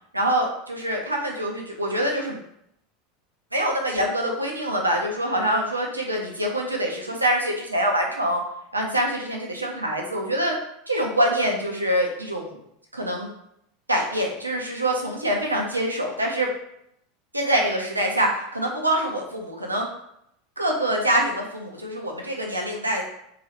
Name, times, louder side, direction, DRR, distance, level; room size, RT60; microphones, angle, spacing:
voice 1, 0.1-2.4 3.5-8.4 8.7-10.5 10.9-12.6 12.9-13.3 13.9-16.5 17.3-19.9 20.6-23.0, right 1 dB, 85° right, 0 dB, 0.5 m, -25 dB
2.8 x 2.3 x 3.2 m, 0.75 s
figure-of-eight pair, 80°, 0 cm